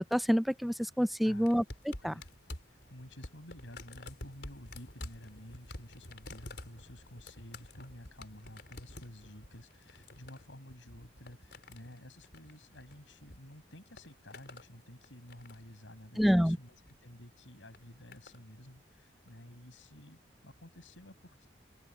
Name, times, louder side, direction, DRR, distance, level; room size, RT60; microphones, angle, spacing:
voice 1, 0.1-1.6 2.0-2.1 16.2-16.6, equal, ahead, 0.4 m, -27 dB
voice 2, 1.2-1.6 2.0-2.3 2.7-21.5, left 1 dB, 85° left, 6.6 m, -52 dB
sound 1, 1.4-13.4 13.7-14.7 15.0-15.7 16.7-17.0 17.7-18.4 19.3-19.4, left 1 dB, 60° left, 5.0 m, -50 dB
open air
head